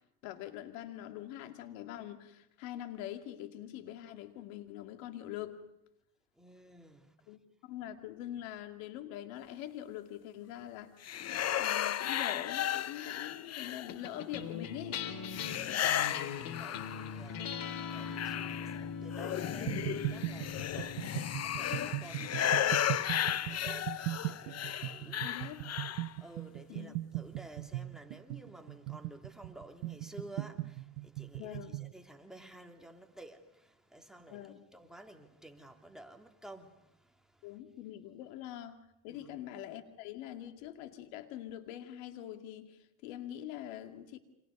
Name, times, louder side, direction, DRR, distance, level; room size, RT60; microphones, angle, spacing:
voice 1, 0.2-5.6 7.3-11.1 11.6-15.0 25.2-25.7 26.7-27.0 31.4-31.8 34.3-34.6 37.4-38.8 39.0-44.2, left 12 dB, 80° left, 2.4 m, -44 dB
voice 2, 6.4-7.3 15.9-25.5 26.1-37.5 39.1-39.4, right 1 dB, ahead, 2.9 m, -53 dB
sound 1, 11.0-14.2 15.3-17.3 17.7-26.1, left 10 dB, 40° left, 0.9 m, -34 dB
sound 2, 13.9-24.5, left 6 dB, 55° left, 2.8 m, -42 dB
sound 3, 19.7-31.9, right 18 dB, 75° right, 1.1 m, -39 dB
29.5 x 26.0 x 5.4 m
supercardioid pair, 90°, 39 cm